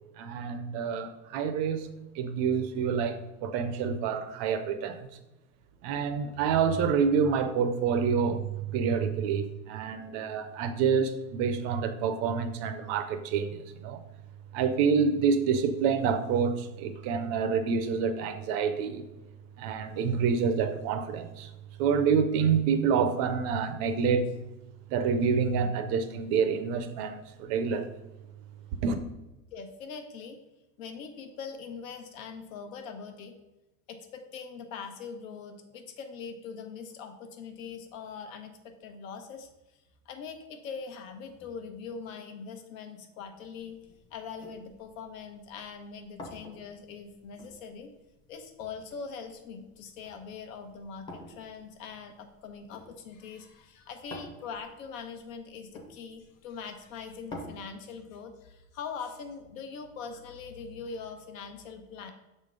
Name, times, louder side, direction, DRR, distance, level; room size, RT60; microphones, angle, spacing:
voice 1, 0.2-1.9 2.1-5.1 5.8-14.0 14.5-19.1 19.6-21.5 21.8-24.3 24.9-27.9 28.8-29.0, right 6 dB, 40° right, 0.4 m, -27 dB
voice 2, 29.5-30.4 30.8-33.3 33.9-39.5 40.0-43.8 44.1-47.9 48.3-62.1, left 5 dB, 85° left, 1.1 m, -42 dB
sound 1, 43.6-57.4, left 1 dB, 10° left, 0.6 m, -51 dB
6.6 x 3.7 x 5.1 m
supercardioid pair, 170°, 39 cm